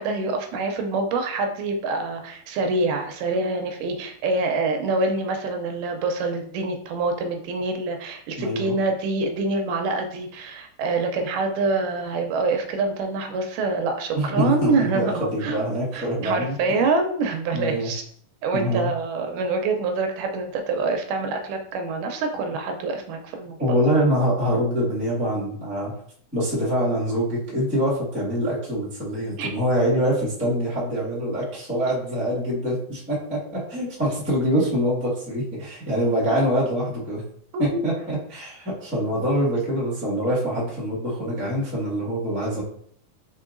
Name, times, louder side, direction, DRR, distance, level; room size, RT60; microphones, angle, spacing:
voice 1, 0.0-15.6 15.9-18.0 18.4-23.6 29.4-29.5 37.5-37.9, right 3 dB, 80° right, 4 dB, 2.1 m, -26 dB
voice 2, 8.4-8.7 14.1-16.8 17.5-17.9 18.5-18.9 23.6-25.9 26.3-37.2 37.6-42.6, equal, 10° right, -7 dB, 0.7 m, -24 dB
4.5 x 4.3 x 2.5 m, 0.62 s
omnidirectional pair, 3.8 m